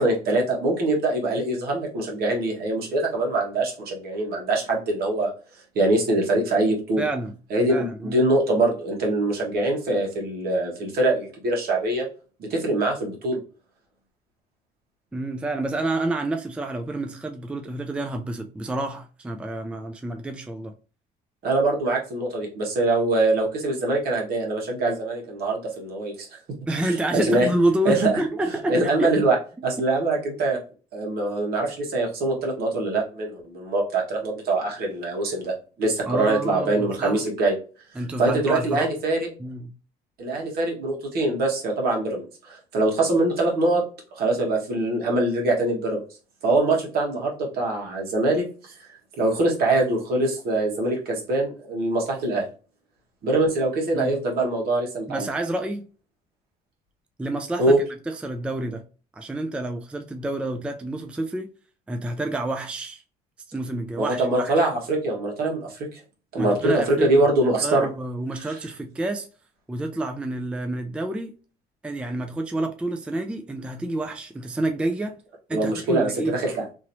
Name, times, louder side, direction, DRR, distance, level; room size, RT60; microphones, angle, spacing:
voice 1, 0.0-5.3 5.7-7.0 7.5-12.1 12.5-13.4 21.4-26.3 26.8-27.5 27.8-28.2 28.7-29.3 29.6-30.6 30.9-37.5 38.2-39.3 40.2-43.8 44.1-46.0 46.4-48.7 49.2-52.4 53.2-55.3 57.6-57.8 64.0-66.0 66.3-67.9 75.5-76.6, right 2 dB, 65° right, 1.4 m, -23 dB
voice 2, 7.0-7.3 7.7-8.2 15.1-20.7 26.7-29.2 36.0-37.2 38.0-38.9 39.4-39.7 53.9-54.1 55.1-55.8 57.2-57.8 58.1-58.8 59.1-61.5 61.9-63.0 63.5-64.6 66.4-67.1 67.6-69.3 69.7-71.3 71.8-75.2 75.5-76.4, right 1 dB, 5° right, 0.3 m, -28 dB
3.0 x 2.9 x 2.6 m
cardioid pair, 110°, 17 cm